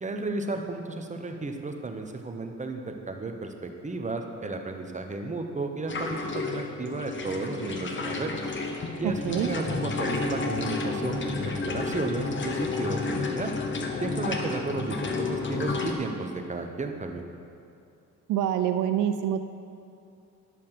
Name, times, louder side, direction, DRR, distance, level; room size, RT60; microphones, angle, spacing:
voice 1, 0.0-8.3 9.0-13.5 14.0-17.3, right 3 dB, 25° right, 4 dB, 1.0 m, -33 dB
sound 1, 5.9-15.9, left 3 dB, 40° left, 1.1 m, -31 dB
voice 2, 9.0-9.5 18.3-19.4, right 10 dB, 85° right, 8 dB, 0.5 m, -26 dB
11.0 x 6.3 x 5.9 m, 2.5 s
cardioid pair, 90°, 30 cm